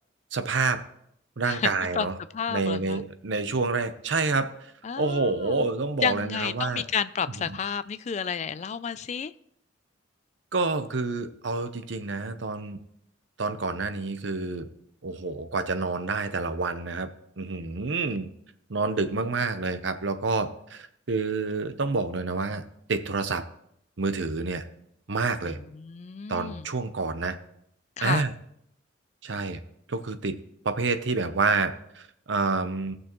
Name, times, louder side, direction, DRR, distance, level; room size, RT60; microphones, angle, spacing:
voice 1, 0.3-0.8 1.4-2.2 2.5-4.5 5.0-6.8 7.4-7.6 10.5-12.8 13.4-14.7 15.0-17.1 17.4-18.3 18.7-22.6 22.9-23.4 24.0-24.7 25.1-25.6 26.3-27.4 28.0-28.3 29.2-29.6 29.9-30.4 30.6-32.9, right 3 dB, 70° right, 10 dB, 0.7 m, -28 dB
voice 2, 2.3-3.0 4.8-5.7 6.0-9.3 25.5-26.7 28.0-28.3, left 7 dB, 35° left, 14 dB, 0.3 m, -31 dB
17.5 x 6.2 x 3.0 m, 0.72 s
head